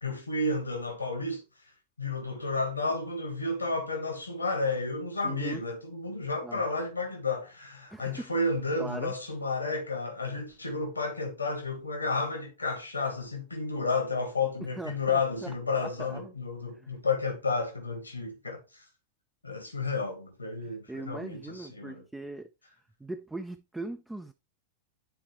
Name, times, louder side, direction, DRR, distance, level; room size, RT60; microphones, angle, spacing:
voice 1, 0.0-1.4 2.0-18.8 19.4-22.0, left 3 dB, 80° left, 1.5 m, -31 dB
voice 2, 5.2-5.6 6.4-6.6 7.9-8.3 8.8-9.1 14.8-16.3 16.7-16.9 20.6-22.5 23.0-24.3, right 2 dB, 5° right, 0.5 m, -40 dB
10.5 x 4.3 x 3.2 m
figure-of-eight pair, 90°, 0 cm